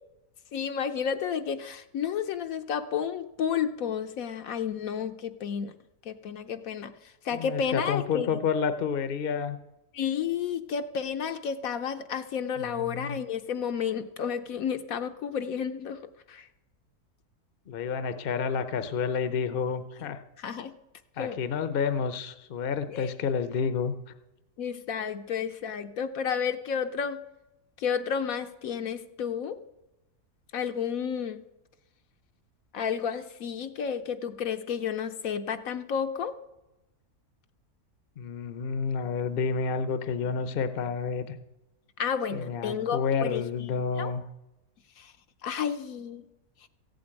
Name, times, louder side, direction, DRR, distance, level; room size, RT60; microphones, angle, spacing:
voice 1, 0.5-5.7 6.1-6.9 7.2-8.4 9.9-16.0 16.3-16.5 20.4-20.7 21.2-21.4 22.9-23.1 24.6-27.2 27.8-29.6 30.5-31.5 32.7-36.3 42.0-43.4 44.0-44.1 45.0-45.1 45.4-46.2, left 7 dB, 70° left, 8 dB, 1.1 m, -31 dB
voice 2, 7.3-9.6 12.6-13.2 17.7-20.2 21.2-23.9 38.2-41.3 42.3-44.2, left 6 dB, 45° left, 10 dB, 0.8 m, -29 dB
15.0 x 7.8 x 8.9 m, 0.96 s
omnidirectional pair, 1.6 m